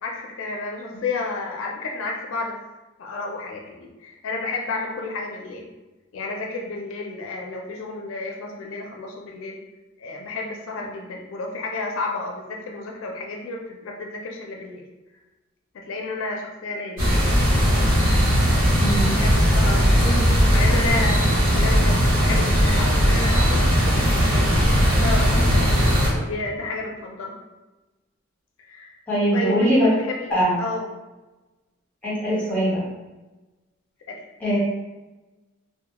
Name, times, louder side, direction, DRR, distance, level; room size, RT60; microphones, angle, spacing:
voice 1, 0.0-2.6 3.0-5.7 6.1-9.6 10.0-14.8 15.7-17.3 19.1-20.2 20.5-24.2 25.0-25.7 26.1-27.4 28.6-28.9 29.3-30.3 30.6-30.9 34.1-34.2, left 3 dB, 80° left, 0 dB, 0.4 m, -31 dB
sound 1, 17.0-26.1, equal, 85° right, 0.9 m, -18 dB
voice 2, 18.7-19.1 20.0-20.2 29.1-29.9 30.3-30.5 32.0-32.8 34.4-34.6, equal, 10° left, -8 dB, 1.0 m, -22 dB
2.2 x 2.2 x 2.9 m, 1.1 s
head